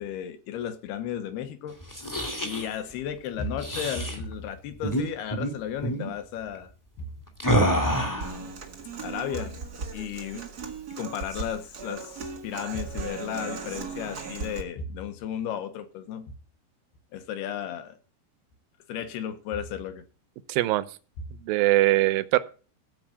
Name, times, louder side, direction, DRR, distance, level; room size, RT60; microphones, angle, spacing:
voice 1, 0.0-1.8 2.4-6.7 7.0-7.1 7.6-8.6 9.0-9.6 9.9-10.5 10.9-16.3 17.1-18.0 18.9-20.0, left 8 dB, 75° left, 3.1 m, -34 dB
sound 1, 1.8-2.7 3.6-4.2 4.8-5.0 5.3-5.5 5.8-6.1 7.4-8.3, right 1 dB, 15° left, 0.6 m, -26 dB
Human voice / Acoustic guitar, 8.2-14.6, right 4 dB, 50° right, 1.1 m, -37 dB
voice 2, 20.5-20.9 21.4-22.4, right 17 dB, 80° right, 2.1 m, -21 dB
15.0 x 5.1 x 8.6 m
omnidirectional pair, 4.9 m